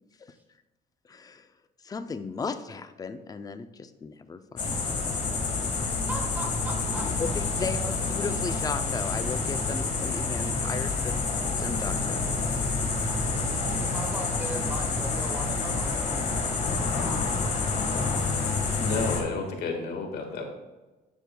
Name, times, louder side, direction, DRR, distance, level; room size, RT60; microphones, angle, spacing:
voice 1, 1.1-1.5 1.8-5.0 7.2-11.2 11.6-12.3, left 4 dB, 20° left, 10 dB, 0.4 m, -36 dB
sound 1, 4.6-19.2, left 4 dB, 45° left, 1.5 m, -28 dB
voice 2, 6.1-7.6 13.8-16.0, equal, 10° right, 0 dB, 1.7 m, -38 dB
voice 3, 18.8-20.4, left 3 dB, 70° left, 3 dB, 1.6 m, -31 dB
10.0 x 6.3 x 2.2 m, 1.1 s
cardioid pair, 110°, 17 cm